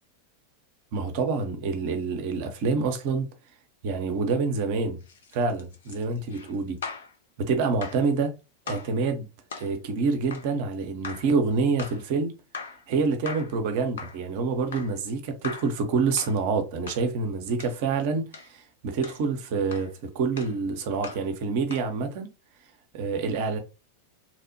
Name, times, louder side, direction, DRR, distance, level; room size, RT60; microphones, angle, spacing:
voice 1, 0.9-3.3 3.8-5.0 5.3-6.8 7.4-8.3 8.7-9.3 9.5-12.3 12.9-22.3 22.9-23.6, right 4 dB, 50° right, 0.6 m, -27 dB
sound 1, 5.0-7.1 7.8-8.1 8.7-9.0 9.5-9.7 10.3-10.5 11.0-11.3 11.8-12.0 12.5-12.8 13.3-13.6 14.0-14.2 14.7-15.0 15.4-15.8 16.2-16.4 16.9-17.1 17.6-17.8 18.3-18.5 19.0-19.2 19.7-19.9 20.4-20.6 21.0-21.3 21.7-21.9, left 5 dB, 65° left, 0.5 m, -40 dB
2.9 x 2.1 x 2.7 m
figure-of-eight pair, 90°, 0 cm